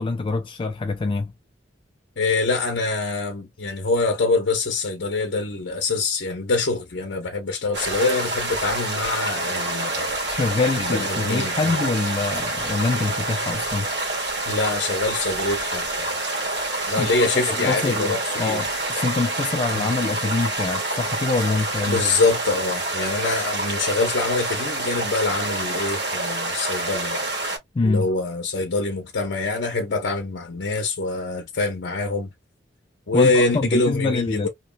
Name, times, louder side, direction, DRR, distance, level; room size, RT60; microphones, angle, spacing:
voice 1, 0.0-1.3 10.3-13.9 17.0-22.0 27.7-28.1 33.1-34.5, left 3 dB, 25° left, 0.3 m, -25 dB
voice 2, 2.2-10.3 10.8-11.8 14.5-16.2 16.9-18.6 19.7-19.9 21.9-27.2 27.8-32.3 33.1-34.5, left 3 dB, 60° left, 0.7 m, -25 dB
sound 1, 7.7-27.6, right 2 dB, 65° right, 1.3 m, -27 dB
2.9 x 2.3 x 2.5 m
head